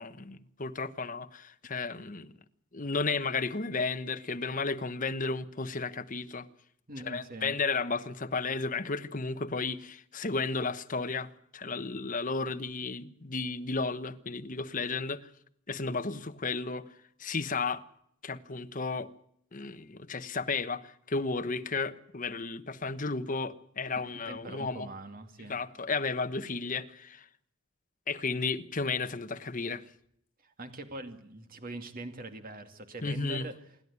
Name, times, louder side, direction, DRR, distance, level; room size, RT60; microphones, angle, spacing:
voice 1, 0.0-2.3 2.7-6.5 7.0-15.3 15.7-16.8 17.2-17.8 18.2-19.1 19.5-24.9 25.5-27.2 28.1-29.8 33.0-33.5, left 4 dB, 40° left, 1.1 m, -33 dB
voice 2, 6.9-7.6 24.3-25.6 30.4-33.5, right 2 dB, 45° right, 2.3 m, -43 dB
27.0 x 11.5 x 9.6 m
head